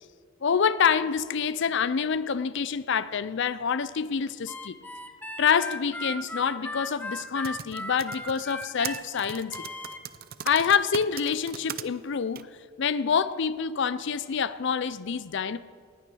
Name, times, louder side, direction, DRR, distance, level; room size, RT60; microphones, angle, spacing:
voice 1, 0.4-4.8 5.4-9.7 10.4-12.5 12.8-15.6, left 6 dB, 60° left, 0.5 m, -26 dB
Harmonica, 4.5-10.0, left 1 dB, 10° left, 0.8 m, -37 dB
Typing, 7.2-11.8 12.3-12.4, right 9 dB, 50° right, 0.5 m, -38 dB
19.0 x 9.6 x 6.3 m
head